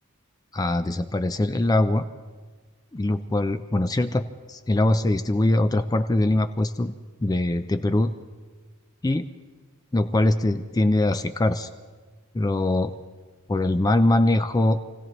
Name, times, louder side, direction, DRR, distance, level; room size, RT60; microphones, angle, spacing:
voice 1, 0.5-2.0 2.9-6.9 7.2-8.1 9.0-9.3 9.9-11.7 12.3-12.9 13.5-14.8, left 1 dB, 15° left, 9 dB, 0.4 m, -22 dB
27.5 x 16.5 x 3.1 m, 1.4 s
head